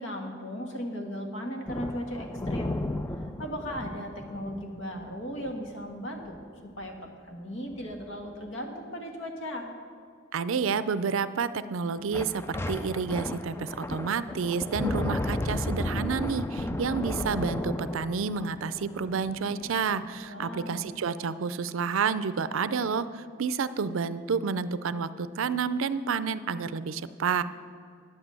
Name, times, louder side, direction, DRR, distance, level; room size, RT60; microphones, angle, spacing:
voice 1, 0.0-2.8 3.1-6.4 6.8-6.9 7.2-9.7 20.3-20.9, equal, 70° left, 3 dB, 1.5 m, -37 dB
sound 1, 1.7-5.9 6.2-6.4 6.8-7.1 7.7-8.1 12.1-20.1, left 1 dB, 10° left, 0.3 m, -34 dB
voice 2, 10.3-27.4, right 5 dB, 80° right, 14 dB, 0.4 m, -30 dB
9.9 x 8.1 x 7.5 m, 2.2 s
head